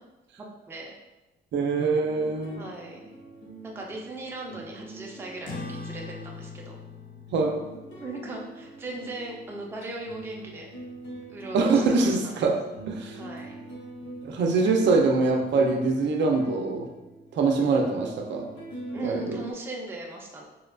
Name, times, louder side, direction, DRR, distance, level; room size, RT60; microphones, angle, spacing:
voice 1, 0.4-0.9 2.5-3.1 3.6-6.8 8.0-10.7 11.3-12.5 13.1-13.7 18.9-20.4, right 2 dB, 10° right, -1 dB, 0.4 m, -38 dB
voice 2, 1.5-2.6 7.3-7.6 11.5-12.6 12.9-13.2 14.2-16.9 17.3-18.5 19.0-19.4, right 3 dB, 75° right, 3 dB, 0.5 m, -23 dB
sound 1, 1.9-19.5, right 2 dB, 85° left, 0.9 m, -44 dB
sound 2, 5.4-10.3, left 4 dB, 45° left, 0.5 m, -43 dB
4.2 x 2.3 x 2.4 m, 1.0 s
cardioid pair, 150°, 19 cm